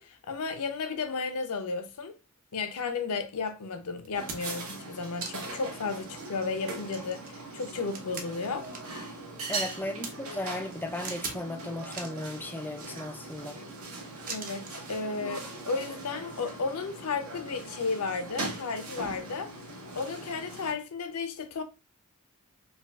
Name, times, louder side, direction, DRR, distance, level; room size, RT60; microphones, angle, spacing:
voice 1, 0.0-2.1 2.5-8.7 14.3-19.5 20.0-21.6, left 4 dB, 80° left, 0.6 m, -33 dB
sound 1, 3.5-3.6 4.0-4.7 5.2-5.7 6.1-6.2 6.6-9.0 9.3-10.1 11.0-11.4 11.8-12.2 12.7-13.4 14.3-14.8 15.9-16.0, right 4 dB, 40° right, 0.6 m, -41 dB
sound 2, 4.1-20.7, right 2 dB, 65° right, 0.9 m, -40 dB
voice 2, 9.5-13.6, left 1 dB, 10° left, 0.3 m, -36 dB
5.0 x 2.3 x 2.3 m
head